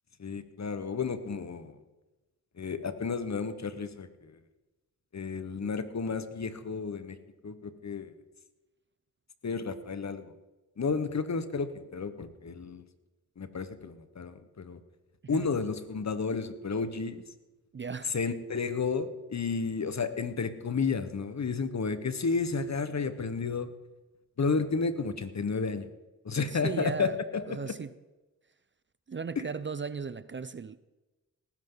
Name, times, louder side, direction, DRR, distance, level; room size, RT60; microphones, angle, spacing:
voice 1, 0.2-1.8 2.5-4.4 5.1-7.2 7.4-8.1 9.4-10.3 10.8-12.9 13.4-14.8 15.3-17.2 18.0-23.7 24.4-25.9 26.2-27.7 29.4-29.5, left 4 dB, 45° left, 1.4 m, -32 dB
voice 2, 17.7-18.1 26.5-27.2 27.5-27.9 29.1-30.8, right 5 dB, 30° right, 0.6 m, -36 dB
19.0 x 10.5 x 4.0 m
supercardioid pair, 45°, 37 cm